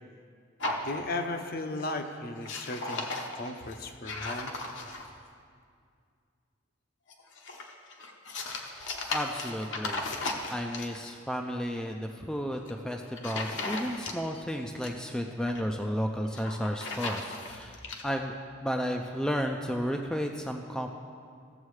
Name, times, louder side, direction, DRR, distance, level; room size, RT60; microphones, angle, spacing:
sound 1, 0.6-1.5 1.8-2.1 2.3-5.2 7.1-11.1 12.5-12.7 13.2-14.4 14.7-15.7 16.3-18.0, left 2 dB, 70° left, 0.9 m, -37 dB
voice 1, 0.8-3.0 3.4-4.5, left 2 dB, 50° left, 6 dB, 0.6 m, -35 dB
voice 2, 8.7-10.0 10.5-20.9, equal, 5° left, 2 dB, 0.3 m, -33 dB
15.5 x 7.3 x 3.2 m, 2.2 s
head